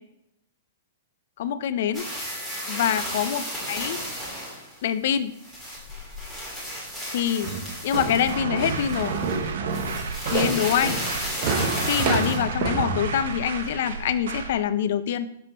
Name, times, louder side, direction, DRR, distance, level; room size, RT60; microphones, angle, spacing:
voice 1, 1.4-2.1 2.7-4.0 4.8-5.3 7.1-7.5 7.8-9.2 10.3-11.0 11.8-15.3, left 9 dB, 50° left, 12 dB, 0.5 m, -25 dB
sound 1, 1.9-4.8 5.3-9.3 9.7-12.4, equal, 5° right, 2.2 m, -33 dB
sound 2, 7.4-12.9, right 4 dB, 35° right, 0.9 m, -28 dB
sound 3, 8.3-14.6, right 5 dB, 65° right, 0.8 m, -32 dB
6.9 x 5.2 x 4.2 m, 0.78 s
hypercardioid pair, 175°, 0 cm